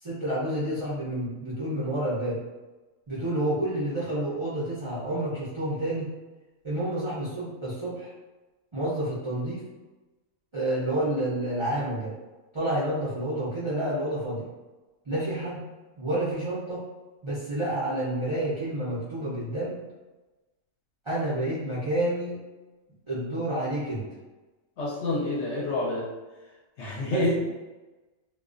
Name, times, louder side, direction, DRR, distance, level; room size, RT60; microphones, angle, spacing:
voice 1, 0.0-2.4 3.1-6.1 6.6-8.1 8.7-9.6 10.5-12.1 12.5-14.5 15.0-15.6 16.0-16.8 17.2-19.8 21.0-22.4 23.1-24.1 27.1-27.4, right 1 dB, 50° right, -11 dB, 0.3 m, -29 dB
voice 2, 24.8-26.1 26.8-27.4, left 1 dB, 65° left, -4 dB, 0.8 m, -28 dB
2.3 x 2.1 x 2.4 m, 1.2 s
omnidirectional pair, 1.4 m